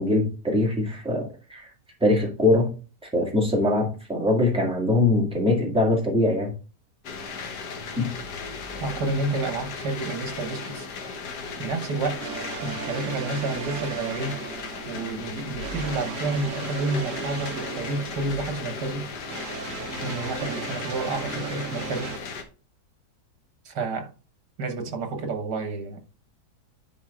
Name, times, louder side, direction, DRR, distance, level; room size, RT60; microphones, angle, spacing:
voice 1, 0.0-1.7 2.0-2.7 3.1-6.5 8.0-8.1, left 2 dB, 5° right, 1.9 m, -22 dB
sound 1, 7.0-22.4, left 4 dB, 70° left, 1.7 m, -36 dB
voice 2, 8.8-10.9 11.6-12.3 12.6-14.4 14.9-19.1 20.0-22.2 23.7-24.1 24.6-26.0, right 3 dB, 75° right, 1.9 m, -30 dB
sound 2, 11.8-22.2, right 6 dB, 60° right, 0.9 m, -37 dB
10.5 x 4.3 x 3.7 m
omnidirectional pair, 1.8 m